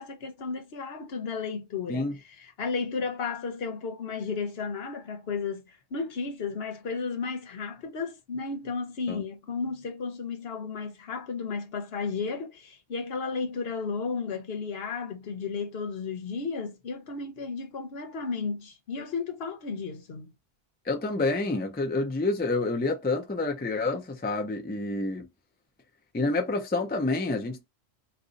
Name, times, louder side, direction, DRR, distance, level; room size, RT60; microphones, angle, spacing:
voice 1, 0.0-2.1 2.4-5.6 5.9-20.3, left 5 dB, 65° left, 1.0 m, -33 dB
voice 2, 20.9-25.3 26.1-27.7, left 2 dB, 15° left, 0.4 m, -28 dB
2.6 x 2.4 x 3.7 m
omnidirectional pair, 1.1 m